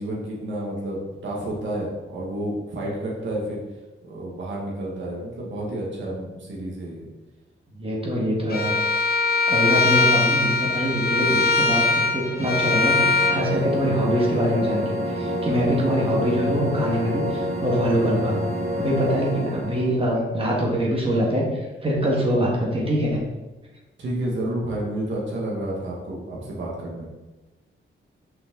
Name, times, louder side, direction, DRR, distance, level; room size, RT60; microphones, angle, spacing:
voice 1, 0.0-3.6 4.0-7.0 24.0-27.1, right 1 dB, 60° right, -4 dB, 1.8 m, -30 dB
voice 2, 7.8-8.8 9.5-18.4 18.7-23.2, equal, 25° right, -2 dB, 1.7 m, -24 dB
Bowed string instrument, 8.5-13.4, left 3 dB, 45° left, 1.1 m, -21 dB
sound 1, 12.3-20.0, equal, 90° right, 1.3 m, -28 dB
5.9 x 5.7 x 3.8 m, 1.1 s
wide cardioid pair, 140°, 21 cm